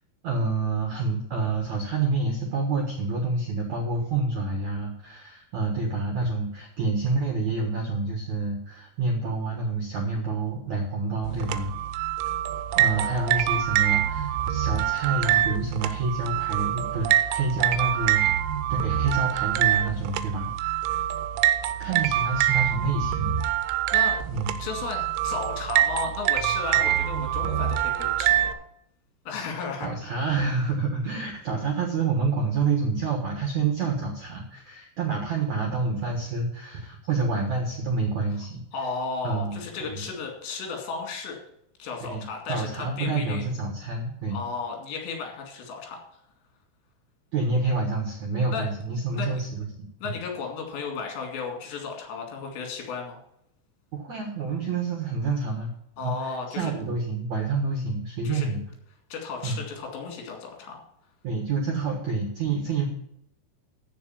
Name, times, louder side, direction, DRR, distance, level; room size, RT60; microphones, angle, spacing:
voice 1, 0.2-11.7 12.8-21.0 21.8-23.4 24.3-24.5 29.8-38.6 39.2-39.6 39.9-40.0 42.1-42.2 42.5-44.4 47.3-49.6 50.0-50.1 53.9-55.7 56.0-58.6 59.4-59.6 61.2-62.9, right 3 dB, 65° right, 2 dB, 1.9 m, -28 dB
sound 1, 11.2-28.5, right 12 dB, 90° right, 3.1 m, -25 dB
voice 2, 12.7-13.6 21.8-21.9 23.9-24.2 24.6-28.5 29.3-30.3 38.7-41.4 41.8-43.4 44.3-46.0 48.5-48.7 49.1-49.4 50.0-53.2 56.0-56.7 58.2-58.5 59.1-60.8, left 5 dB, 70° left, 1 dB, 4.5 m, -34 dB
14.0 x 5.1 x 7.1 m, 0.76 s
omnidirectional pair, 5.4 m